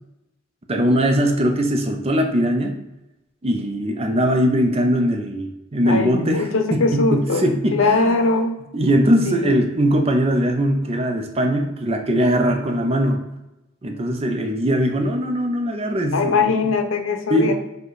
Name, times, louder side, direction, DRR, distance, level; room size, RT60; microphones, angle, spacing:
voice 1, 0.7-2.8 3.4-8.2 8.7-13.2 13.8-16.7 17.3-17.5, equal, 30° right, 4 dB, 0.5 m, -20 dB
voice 2, 5.8-7.5 7.7-8.6 9.3-9.6 16.1-17.5, left 3 dB, 80° left, 6 dB, 0.6 m, -21 dB
4.7 x 2.2 x 4.7 m, 0.92 s
head